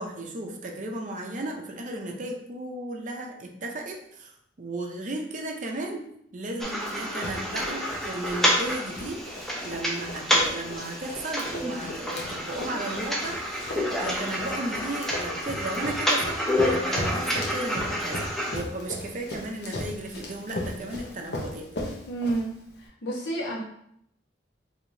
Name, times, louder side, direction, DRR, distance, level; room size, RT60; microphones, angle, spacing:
voice 1, 0.0-6.0 6.3-9.2 9.6-21.7, right 2 dB, 45° right, 2 dB, 0.6 m, -35 dB
sound 1, 6.6-18.6, equal, ahead, 0.6 m, -29 dB
Run, 6.7-22.8, left 1 dB, 65° left, 0.8 m, -38 dB
voice 2, 22.1-23.6, right 2 dB, 80° left, -2 dB, 1.1 m, -30 dB
4.7 x 2.8 x 2.7 m, 0.72 s
head